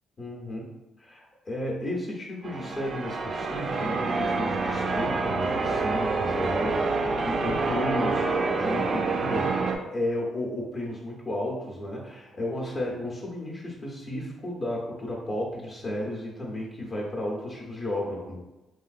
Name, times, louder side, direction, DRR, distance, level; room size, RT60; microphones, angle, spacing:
voice 1, 0.2-0.7 1.0-8.3 8.5-9.6 9.9-18.4, left 1 dB, 40° left, -3 dB, 0.6 m, -33 dB
Church bell, 2.4-9.8, right 3 dB, 45° right, 0.3 m, -27 dB
3.0 x 2.5 x 2.4 m, 1.0 s
cardioid pair, 90°, 0 cm